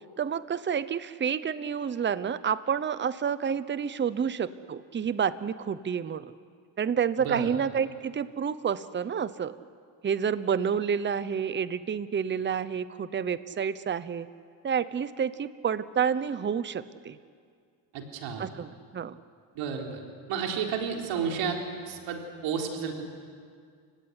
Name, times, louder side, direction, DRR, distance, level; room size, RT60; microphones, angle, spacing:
voice 1, 0.2-6.3 6.8-9.5 10.0-14.3 14.6-17.2 18.4-19.2, right 7 dB, 25° right, 15 dB, 0.9 m, -29 dB
voice 2, 7.2-7.5 17.9-18.5 19.6-20.0 20.3-21.6 21.9-23.0, right 6 dB, 75° right, 2 dB, 3.9 m, -32 dB
29.0 x 16.5 x 9.8 m, 2.1 s
cardioid pair, 110°, 46 cm